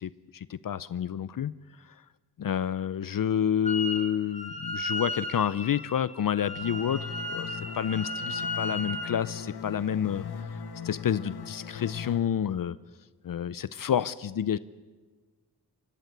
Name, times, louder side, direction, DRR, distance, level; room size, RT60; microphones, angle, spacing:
voice 1, 0.0-1.5 2.4-10.6 10.8-12.8 13.2-14.6, left 9 dB, 60° left, 17 dB, 0.7 m, -29 dB
Wind instrument woodwind instrument, 3.6-4.1 4.3-9.1, left 2 dB, 15° left, 2.6 m, -35 dB
sound 1, 6.6-12.2, left 6 dB, 85° left, 1.6 m, -39 dB
24.5 x 20.0 x 8.0 m, 1.4 s
cardioid pair, 85°, 38 cm